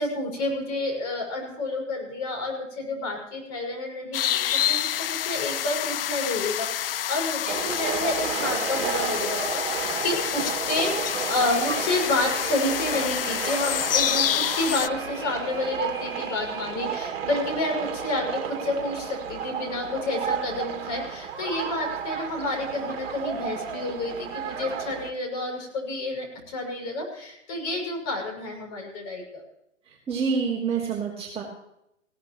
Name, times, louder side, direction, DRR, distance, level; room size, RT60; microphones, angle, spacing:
voice 1, 0.0-10.9 11.3-29.4, left 2 dB, 30° left, 0 dB, 6.6 m, -30 dB
sound 1, 4.1-14.9, left 11 dB, 50° left, 0.5 m, -28 dB
sound 2, 7.5-25.1, right 7 dB, 50° right, 2.3 m, -32 dB
sound 3, 11.0-16.7, equal, 10° left, 3.0 m, -43 dB
voice 2, 29.9-31.4, right 5 dB, 15° right, -5 dB, 3.6 m, -27 dB
20.0 x 17.0 x 3.1 m, 0.80 s
figure-of-eight pair, 130°, 38 cm